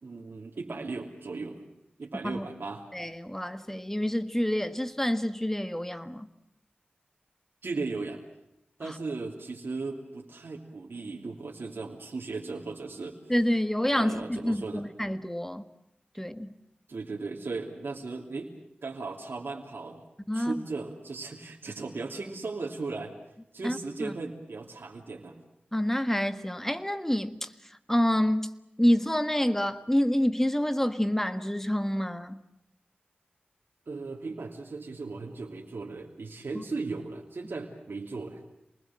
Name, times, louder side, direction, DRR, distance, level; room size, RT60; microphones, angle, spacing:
voice 1, 0.0-1.6 2.0-2.8 7.6-8.2 8.8-13.2 14.0-14.8 16.9-18.5 18.8-20.0 20.3-23.1 23.5-25.4 33.9-38.4, right 3 dB, 80° right, 2.9 m, -37 dB
voice 2, 2.9-6.3 8.8-8.9 13.3-15.6 16.2-16.5 20.3-20.6 23.6-24.1 25.7-27.5 27.9-28.5 28.8-32.4 36.5-36.6, equal, 10° left, 1.6 m, -27 dB
28.0 x 20.5 x 7.6 m
wide cardioid pair, 60°, 4 cm